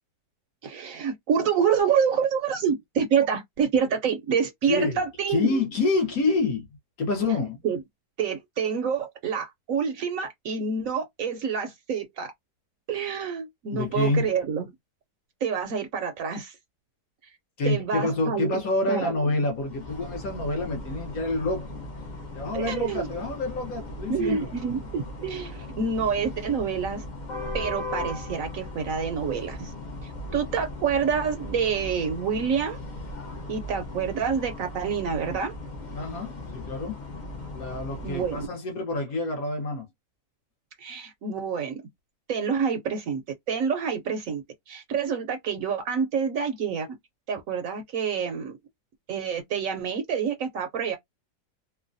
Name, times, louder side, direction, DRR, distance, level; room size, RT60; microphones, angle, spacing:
voice 1, 0.6-5.4 7.6-7.8 8.2-12.3 12.9-14.7 15.4-16.6 17.6-18.6 18.9-19.1 22.5-23.1 24.1-27.0 27.5-29.7 30.3-32.8 33.5-35.5 38.0-38.5 40.8-41.8 42.3-43.2 43.5-46.9 47.3-48.6 49.1-51.0, right 6 dB, 65° right, 0.9 m, -27 dB
voice 2, 4.6-6.7 7.0-7.7 13.7-14.3 17.6-21.8 22.3-24.5 35.9-37.0 37.5-39.9, left 2 dB, 60° left, 1.3 m, -27 dB
sound 1, 19.4-38.5, left 1 dB, 45° left, 0.6 m, -38 dB
3.1 x 2.1 x 2.5 m
omnidirectional pair, 1.8 m